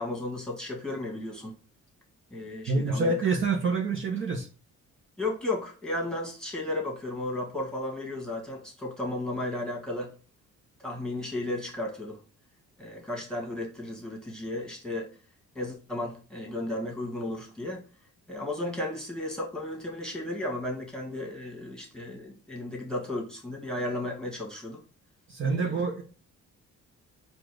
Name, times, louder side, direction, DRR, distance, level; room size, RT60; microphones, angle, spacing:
voice 1, 0.0-1.5 2.3-3.1 5.2-10.1 10.8-12.2 12.8-15.1 15.5-17.8 18.3-24.8 25.5-25.8, left 1 dB, ahead, 1.7 m, -34 dB
voice 2, 2.7-4.5 25.3-26.0, right 3 dB, 40° right, 0.9 m, -27 dB
4.4 x 2.5 x 4.7 m
cardioid pair, 90°, 30 cm